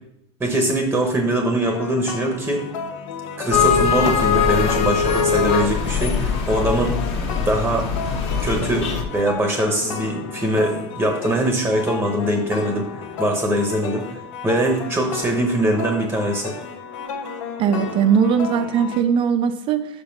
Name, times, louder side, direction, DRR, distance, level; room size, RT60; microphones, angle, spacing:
voice 1, 0.4-2.6 3.4-7.0 7.4-7.9 8.4-8.9 9.1-12.9 13.2-16.5, right 1 dB, 10° right, 2 dB, 1.0 m, -22 dB
sound 1, 1.6-19.0, left 5 dB, 85° left, 1.2 m, -33 dB
sound 2, 3.5-9.0, left 6 dB, 40° left, 1.2 m, -21 dB
voice 2, 17.6-19.9, right 7 dB, 35° right, 10 dB, 0.6 m, -19 dB
6.0 x 5.2 x 6.0 m, 0.78 s
supercardioid pair, 165°, 16 cm